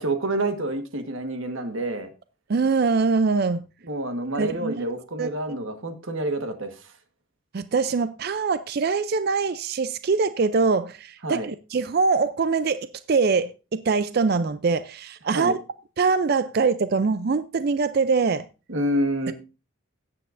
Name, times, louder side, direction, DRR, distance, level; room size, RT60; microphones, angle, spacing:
voice 1, 0.0-2.1 3.8-6.9 11.2-11.5 15.3-15.5 18.7-19.3, right 1 dB, 65° right, 1.4 m, -28 dB
voice 2, 2.5-3.7 4.4-4.9 5.2-5.3 7.5-15.6 16.0-18.5 19.3-19.4, right 4 dB, 45° right, 0.4 m, -23 dB
17.0 x 7.8 x 2.5 m
head